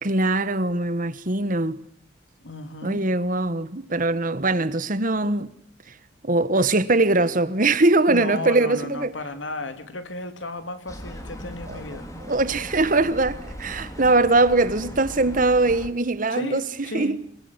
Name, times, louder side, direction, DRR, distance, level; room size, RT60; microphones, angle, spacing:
voice 1, 0.0-1.8 2.8-5.5 6.2-9.1 11.7-11.8 12.2-16.6 16.9-17.2, right 2 dB, 45° right, 1.5 m, -21 dB
voice 2, 2.4-3.0 8.1-12.1 16.3-17.2, left 2 dB, 85° left, 3.2 m, -34 dB
sound 1, 10.9-15.9, equal, 20° left, 4.0 m, -38 dB
26.5 x 23.0 x 9.8 m
head